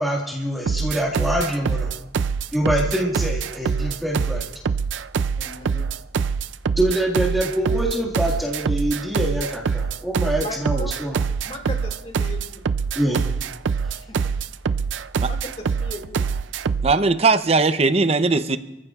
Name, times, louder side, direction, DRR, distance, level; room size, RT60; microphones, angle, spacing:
voice 1, 0.0-1.9 2.5-4.4 6.8-11.2 13.0-13.2, right 1 dB, ahead, -3 dB, 1.8 m, -24 dB
sound 1, 0.7-17.0, right 5 dB, 80° right, 0.4 m, -24 dB
voice 2, 5.4-5.9 10.4-11.0 11.4-12.6 13.9-14.2 14.7-16.2 16.8-16.9, left 1 dB, 35° left, 2 dB, 2.1 m, -37 dB
voice 3, 16.8-18.6, right 3 dB, 35° right, 10 dB, 0.7 m, -19 dB
29.5 x 15.0 x 2.4 m, 0.93 s
head